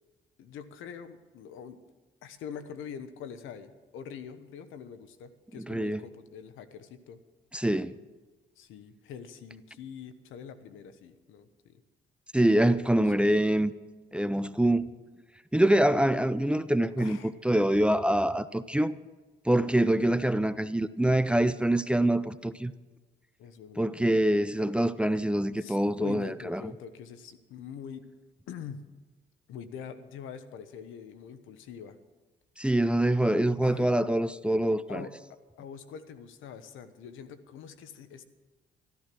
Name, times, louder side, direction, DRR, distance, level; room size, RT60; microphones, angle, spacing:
voice 1, 0.4-1.8 2.2-7.2 8.6-11.8 17.0-17.3 20.0-20.1 23.4-23.9 25.6-28.0 28.5-28.8 29.5-32.0 33.6-34.0 34.9-35.1 35.6-38.2, left 7 dB, 90° left, 1.1 m, -44 dB
voice 2, 5.7-6.0 7.5-7.9 12.3-13.7 14.1-14.9 15.5-19.0 19.5-22.7 23.8-26.6 32.6-35.0, right 1 dB, 5° right, 0.5 m, -25 dB
13.5 x 13.0 x 6.1 m
cardioid pair, 90°, 20 cm